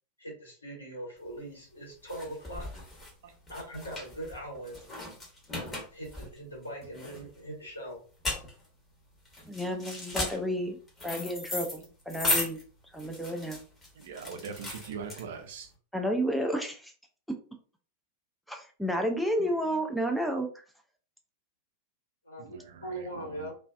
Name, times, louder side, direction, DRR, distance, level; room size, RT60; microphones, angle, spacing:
voice 1, 0.2-2.7 3.5-4.9 5.6-8.0 22.2-23.5, right 1 dB, 80° left, 1.1 m, -41 dB
sound 1, 1.3-15.7, left 2 dB, 15° left, 1.0 m, -37 dB
voice 2, 9.5-10.8 11.0-12.6 12.9-13.6 15.9-16.9 18.5-20.5, equal, ahead, 0.4 m, -31 dB
voice 3, 14.0-15.7 19.4-19.5 22.4-23.5, right 6 dB, 55° right, 0.4 m, -42 dB
2.4 x 2.4 x 2.2 m
figure-of-eight pair, 90°, 0 cm